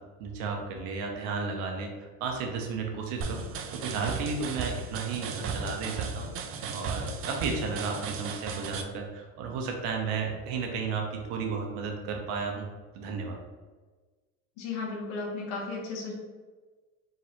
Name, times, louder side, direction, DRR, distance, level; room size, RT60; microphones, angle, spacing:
voice 1, 0.2-6.3 6.7-12.7 12.9-13.4, right 5 dB, 75° right, 1 dB, 1.0 m, -33 dB
sound 1, 3.2-8.8, right 5 dB, 40° right, 0.4 m, -35 dB
voice 2, 14.6-16.1, left 4 dB, 80° left, -3 dB, 1.3 m, -34 dB
3.8 x 2.5 x 4.4 m, 1.3 s
cardioid pair, 140°, 37 cm